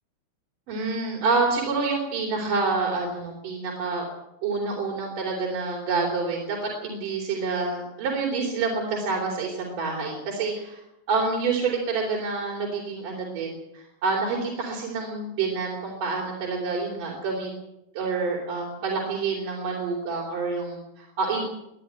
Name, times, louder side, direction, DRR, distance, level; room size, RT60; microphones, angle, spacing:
voice 1, 0.7-4.1 4.4-10.8 11.1-17.5 18.0-21.4, right 4 dB, 65° right, -1 dB, 5.2 m, -27 dB
21.5 x 12.0 x 9.8 m, 0.87 s
omnidirectional pair, 4.1 m